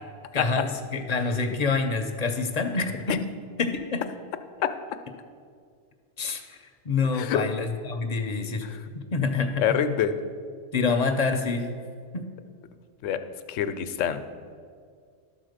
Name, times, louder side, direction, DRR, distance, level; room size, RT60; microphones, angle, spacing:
voice 1, 0.3-3.2 3.6-4.0 6.2-6.6 6.8-8.7 8.9-9.6 10.7-11.7 12.1-12.3, left 4 dB, 45° left, 6 dB, 0.6 m, -27 dB
voice 2, 7.1-7.4 8.6-8.8 9.6-10.1 13.0-13.2 13.5-14.2, left 9 dB, 90° left, 10 dB, 0.9 m, -25 dB
12.0 x 4.1 x 6.5 m, 2.1 s
omnidirectional pair, 1.2 m